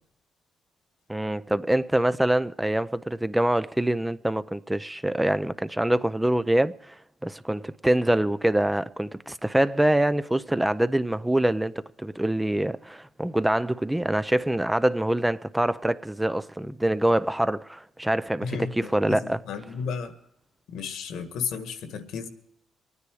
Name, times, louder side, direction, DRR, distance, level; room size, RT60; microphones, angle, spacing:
voice 1, 1.1-6.9 7.2-11.7 12.0-19.4, right 1 dB, 10° right, 0.5 m, -25 dB
voice 2, 18.4-20.1 20.7-22.3, left 6 dB, 80° left, 1.7 m, -33 dB
24.0 x 9.8 x 4.8 m
cardioid pair, 90°, 0 cm